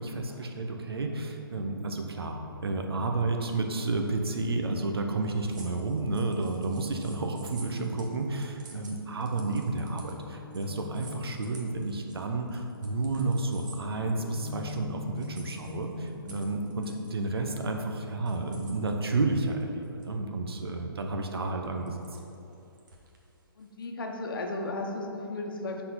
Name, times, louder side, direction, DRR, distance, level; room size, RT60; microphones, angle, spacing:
voice 1, 0.0-2.4 2.6-22.0, right 3 dB, 75° right, 3 dB, 0.9 m, -31 dB
Guitar, 1.3-9.0 9.3-19.8, left 6 dB, 20° left, 0.4 m, -48 dB
sound 1, 5.2-14.8 15.2-18.9 19.6-20.3 20.7-20.9 21.6-23.9, right 4 dB, 50° right, 1.2 m, -52 dB
voice 2, 21.4-21.8 23.6-25.8, left 2 dB, 60° left, 2 dB, 1.0 m, -36 dB
5.6 x 4.2 x 5.7 m, 2.8 s
hypercardioid pair, 150°, 13 cm